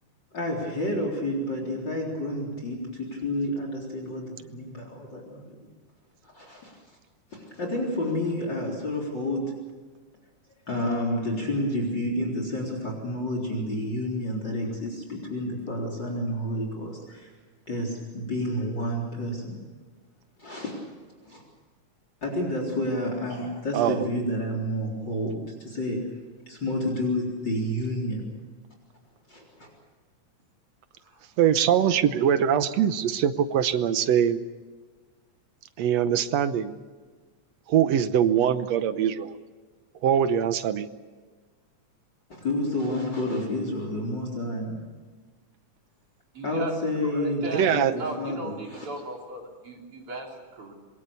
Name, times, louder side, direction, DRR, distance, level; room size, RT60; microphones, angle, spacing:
voice 1, 0.3-5.5 6.3-6.8 7.3-9.5 10.7-17.3 17.7-19.6 20.4-20.9 21.2-21.4 22.2-26.0 26.5-28.2 29.3-29.7 42.3-44.8 46.4-47.5 47.7-48.9, left 1 dB, 35° left, 1 dB, 4.4 m, -30 dB
voice 2, 23.7-24.1 31.4-34.4 35.8-36.8 37.7-39.3 40.0-40.9 47.5-47.9, right 9 dB, 70° right, 11 dB, 2.0 m, -22 dB
voice 3, 46.3-46.7 47.0-50.7, right 2 dB, 45° right, 0 dB, 4.4 m, -37 dB
26.5 x 22.0 x 6.9 m, 1.4 s
omnidirectional pair, 3.4 m